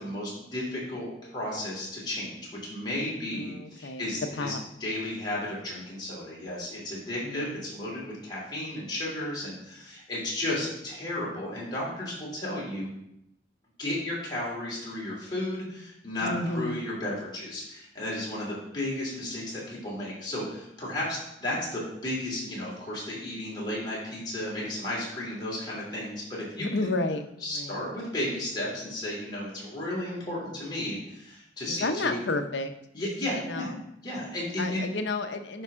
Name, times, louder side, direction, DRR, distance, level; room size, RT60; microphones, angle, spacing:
voice 1, 0.0-4.5 4.8-12.9 13.8-26.9 27.4-32.2 32.9-33.7 34.0-34.8, left 1 dB, 25° left, -6 dB, 3.0 m, -33 dB
voice 2, 3.3-4.1 4.4-4.6 7.2-7.6 16.2-16.8 26.6-27.2 27.5-27.8 31.8-32.7 33.3-33.7 34.6-35.6, left 2 dB, 70° left, 7 dB, 0.7 m, -31 dB
9.9 x 5.4 x 3.7 m, 0.80 s
head